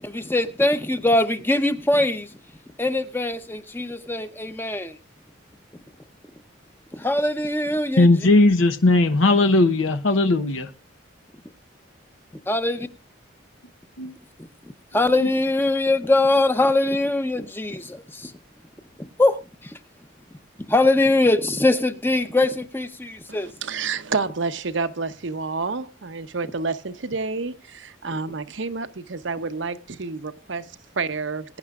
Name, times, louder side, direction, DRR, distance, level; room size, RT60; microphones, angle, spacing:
voice 1, 0.0-2.3 2.8-5.0 6.9-8.1 12.5-12.9 14.9-18.3 19.0-19.7 20.7-23.5, left 2 dB, 10° left, 0.7 m, -22 dB
voice 2, 8.0-10.7 14.0-14.1, left 2 dB, 90° left, 0.9 m, -17 dB
voice 3, 23.3-31.6, right 4 dB, 70° right, 0.8 m, -29 dB
21.5 x 9.8 x 2.4 m
head